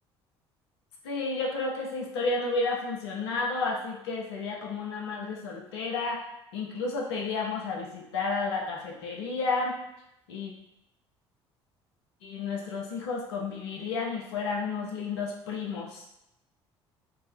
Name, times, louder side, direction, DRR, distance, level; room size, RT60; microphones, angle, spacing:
voice 1, 1.0-6.2 6.5-9.8 10.3-10.5 12.2-16.0, left 3 dB, 75° left, -1 dB, 0.5 m, -31 dB
2.5 x 2.0 x 3.2 m, 0.84 s
figure-of-eight pair, 55°, 14 cm